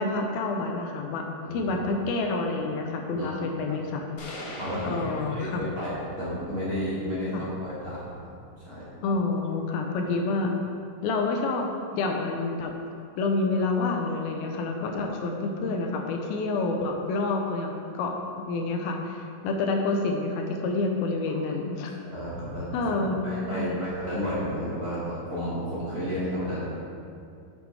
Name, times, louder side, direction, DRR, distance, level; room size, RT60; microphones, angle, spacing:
voice 1, 0.0-1.2 1.5-4.0 4.8-5.7 7.3-7.4 9.0-10.6 11.0-12.7 13.2-18.2 18.5-21.9 22.7-23.8, left 3 dB, 85° left, 2 dB, 2.5 m, -28 dB
voice 2, 1.4-1.8 3.2-3.4 4.6-8.2 8.6-8.8 21.3-21.4 21.9-22.7 23.2-26.8, equal, 30° right, -9 dB, 2.1 m, -32 dB
sound 1, 4.2-6.1, left 1 dB, 65° left, 3.2 m, -40 dB
9.9 x 8.1 x 3.5 m, 2.4 s
omnidirectional pair, 4.4 m